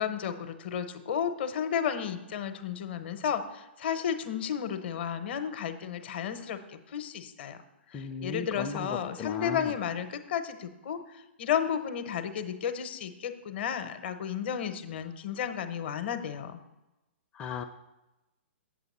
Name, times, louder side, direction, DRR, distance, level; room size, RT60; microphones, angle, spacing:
voice 1, 0.0-7.6 7.9-16.6, left 8 dB, 55° left, 10 dB, 0.8 m, -33 dB
voice 2, 7.9-9.7 17.4-17.6, left 6 dB, 20° left, 3 dB, 0.5 m, -36 dB
8.1 x 7.5 x 4.2 m, 0.99 s
figure-of-eight pair, 120°, 7 cm